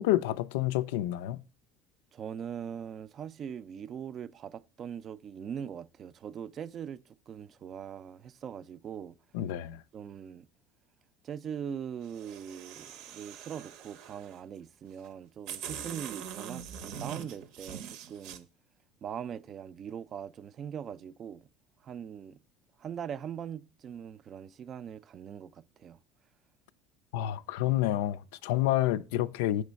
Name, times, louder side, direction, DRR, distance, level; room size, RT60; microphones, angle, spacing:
voice 1, 0.0-1.4 9.3-9.8 27.1-29.6, left 14 dB, 85° left, 0.3 m, -29 dB
voice 2, 2.1-9.2 9.9-10.5 11.2-18.5 19.0-21.5 21.8-22.4 22.8-26.0, right 8 dB, 40° right, 0.3 m, -41 dB
sound 1, 12.0-14.4 15.0-15.1 15.5-18.4, right 8 dB, 70° right, 0.7 m, -43 dB
6.1 x 3.2 x 5.1 m
supercardioid pair, 105°, 0 cm